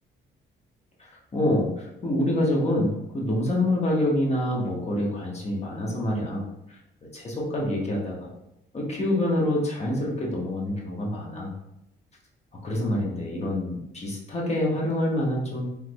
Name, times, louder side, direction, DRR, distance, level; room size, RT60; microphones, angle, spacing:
voice 1, 1.1-6.4 7.1-8.3 8.7-11.5 12.6-15.8, left 1 dB, 35° left, -3 dB, 1.1 m, -26 dB
3.5 x 3.1 x 2.3 m, 0.86 s
cardioid pair, 90°, 20 cm